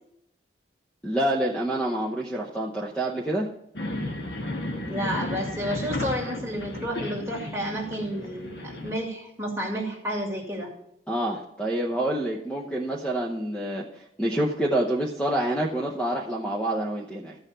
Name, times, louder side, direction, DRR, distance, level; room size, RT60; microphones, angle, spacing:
voice 1, 1.0-3.5 11.1-17.4, right 1 dB, 5° left, -1 dB, 0.8 m, -27 dB
sound 1, 3.7-8.9, left 1 dB, 70° left, 1.4 m, -33 dB
voice 2, 4.9-10.7, equal, 15° right, -2 dB, 2.1 m, -31 dB
14.0 x 5.6 x 5.6 m, 0.78 s
head